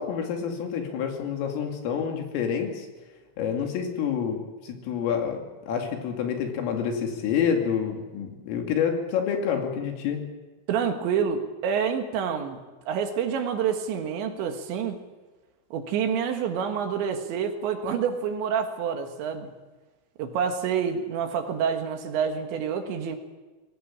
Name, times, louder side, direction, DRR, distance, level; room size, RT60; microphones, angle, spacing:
voice 1, 0.0-2.9 3.4-10.3, left 7 dB, 80° left, 3 dB, 5.2 m, -28 dB
voice 2, 10.7-12.6 12.9-15.0 15.7-19.5 20.2-23.2, right 7 dB, 70° right, 6 dB, 3.7 m, -27 dB
22.5 x 17.5 x 8.6 m, 1.2 s
omnidirectional pair, 5.8 m